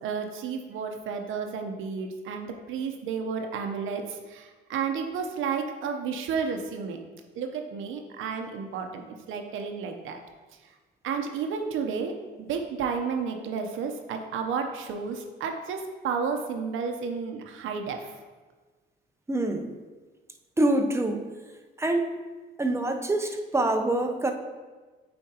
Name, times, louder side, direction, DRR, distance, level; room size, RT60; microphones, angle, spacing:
voice 1, 0.0-7.0 7.4-10.2 11.0-18.2, right 6 dB, 85° right, 4 dB, 0.8 m, -32 dB
voice 2, 19.3-19.7 20.6-21.2 21.8-22.1 22.6-24.3, right 2 dB, 15° right, 4 dB, 0.7 m, -25 dB
8.5 x 4.4 x 2.9 m, 1.3 s
cardioid pair, 90°, 20 cm